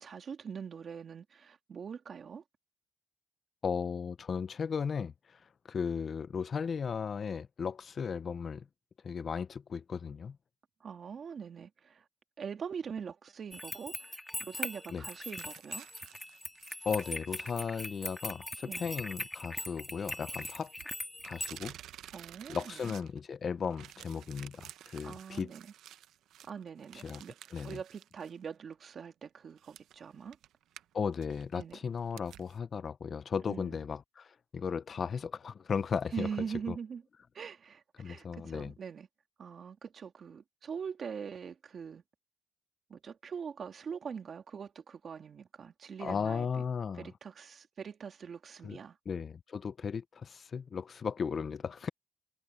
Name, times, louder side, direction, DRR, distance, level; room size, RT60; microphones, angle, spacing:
voice 1, 0.0-2.4 10.8-12.0 12.4-15.9 18.6-18.8 22.1-22.9 25.0-25.7 26.5-30.4 31.5-31.8 33.5-33.7 36.1-37.0 37.3-39.1 39.4-42.0 42.9-46.5 46.9-49.0, right 6 dB, 50° right, 2.8 m, -42 dB
voice 2, 3.6-5.4 5.7-8.6 9.0-10.4 14.9-15.0 16.8-20.7 21.2-21.7 22.5-25.5 27.0-27.2 27.5-27.8 30.9-36.3 36.7-36.8 38.0-38.7 46.0-47.1 48.6-48.8 49.1-51.9, left 6 dB, 45° left, 0.5 m, -36 dB
sound 1, 13.5-21.6, left 1 dB, 10° left, 1.9 m, -41 dB
sound 2, 15.0-17.7 18.1-18.2 20.4-23.4 23.6-28.4 28.7-28.8 29.6-32.6, right 12 dB, 80° right, 0.8 m, -53 dB
cardioid pair, 90°, 0 cm